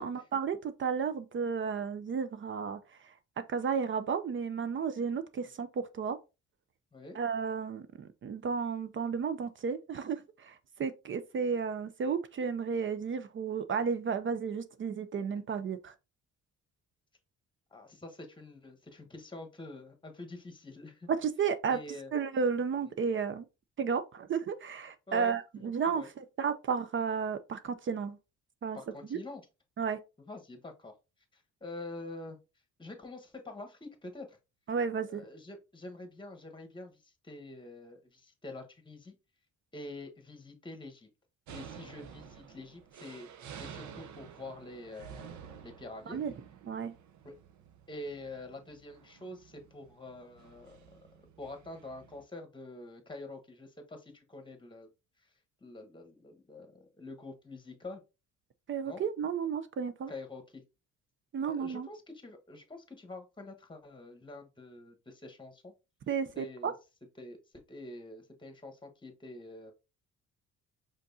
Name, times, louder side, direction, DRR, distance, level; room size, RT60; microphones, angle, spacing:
voice 1, 0.0-3.1 3.5-5.7 5.9-6.2 7.1-15.9 21.1-21.8 22.1-23.4 23.8-28.2 28.6-28.8 29.1-29.2 29.8-30.0 34.7-35.3 46.1-46.3 46.7-46.9 58.7-60.1 61.3-61.9 66.1-66.7, right 6 dB, 40° right, 0.5 m, -33 dB
voice 2, 17.7-21.1 21.6-22.1 22.8-22.9 25.1-26.1 28.7-29.5 30.2-30.9 31.3-32.4 32.8-34.4 35.1-39.1 39.7-41.1 41.5-43.3 43.6-46.2 47.2-47.4 47.9-51.0 51.4-54.9 55.2-55.3 55.6-58.0 58.8-59.0 60.1-60.6 61.4-65.7 66.3-66.7 67.2-67.4 67.7-69.7, left 2 dB, 15° left, 1.2 m, -46 dB
sound 1, 41.5-52.2, right 8 dB, 70° right, 0.8 m, -51 dB
5.1 x 3.8 x 2.6 m
cardioid pair, 90°, 30 cm